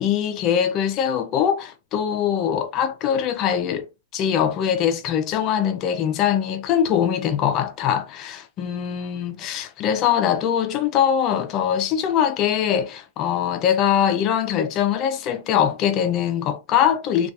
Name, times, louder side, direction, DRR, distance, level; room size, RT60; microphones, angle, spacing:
voice 1, 0.0-3.9 4.1-17.3, left 9 dB, 30° left, 0.4 m, -22 dB
2.7 x 2.3 x 2.3 m
supercardioid pair, 160°, 0 cm